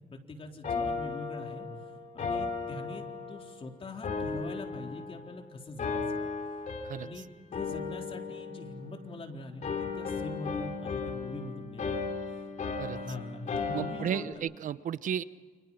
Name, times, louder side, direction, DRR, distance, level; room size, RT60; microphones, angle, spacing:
voice 1, 0.1-1.7 2.1-6.2 7.0-12.4 12.9-14.3, left 2 dB, 40° left, 2 dB, 4.0 m, -43 dB
sound 1, 0.6-3.6 4.0-5.4 5.8-7.2 7.5-9.2 9.6-14.3, left 4 dB, 60° left, 4.3 m, -36 dB
voice 2, 13.7-15.2, right 9 dB, 70° right, 15 dB, 0.9 m, -33 dB
29.0 x 28.5 x 5.7 m, 1.4 s
cardioid pair, 105°, 14 cm